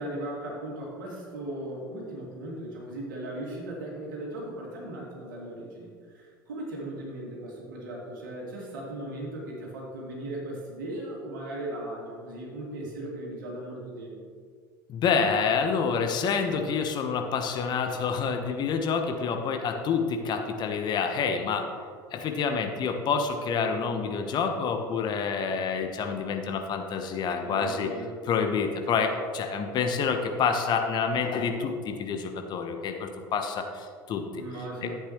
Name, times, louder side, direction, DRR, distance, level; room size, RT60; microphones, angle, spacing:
voice 1, 0.0-14.2 27.4-28.2 34.4-35.0, right 1 dB, 70° right, -3 dB, 2.7 m, -37 dB
voice 2, 14.9-21.7 22.1-27.9 28.3-34.4 34.8-34.9, left 5 dB, 40° left, 4 dB, 1.1 m, -28 dB
13.0 x 8.2 x 3.1 m, 2.1 s
figure-of-eight pair, 70°, 11 cm